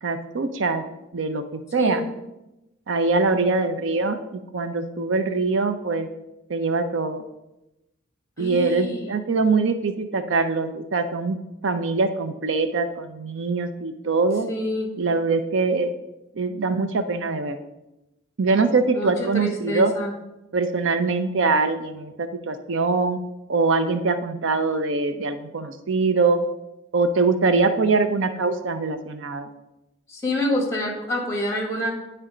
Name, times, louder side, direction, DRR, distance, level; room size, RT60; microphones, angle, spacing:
voice 1, 0.0-0.8 1.1-1.4 1.7-2.0 2.9-6.1 6.5-7.2 8.4-11.4 11.6-14.5 15.0-15.9 16.3-17.6 18.4-19.9 20.5-23.2 23.5-26.4 26.9-29.5, right 3 dB, 70° right, 9 dB, 0.5 m, -23 dB
voice 2, 8.4-9.1 14.5-14.9 18.9-20.1 30.1-31.9, left 1 dB, 15° left, 0 dB, 1.5 m, -27 dB
9.4 x 3.3 x 4.9 m, 0.94 s
head